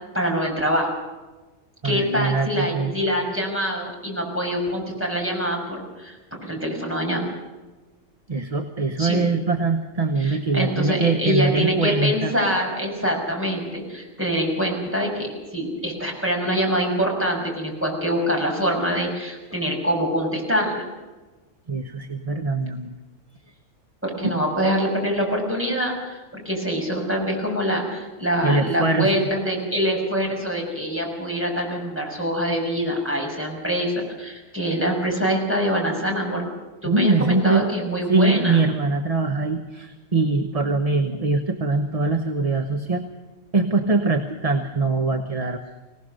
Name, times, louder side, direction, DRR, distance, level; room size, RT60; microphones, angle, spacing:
voice 1, 0.1-0.9 1.8-6.2 6.4-7.2 9.0-9.2 10.2-20.8 24.0-26.2 26.4-36.4 36.8-38.6, equal, 10° right, -1 dB, 6.1 m, -24 dB
voice 2, 1.8-2.9 8.3-12.3 21.7-22.9 24.2-24.3 28.4-29.3 36.8-37.7 38.1-43.0 43.5-45.8, right 3 dB, 30° right, 5 dB, 1.2 m, -22 dB
24.5 x 18.0 x 6.6 m, 1.2 s
omnidirectional pair, 1.3 m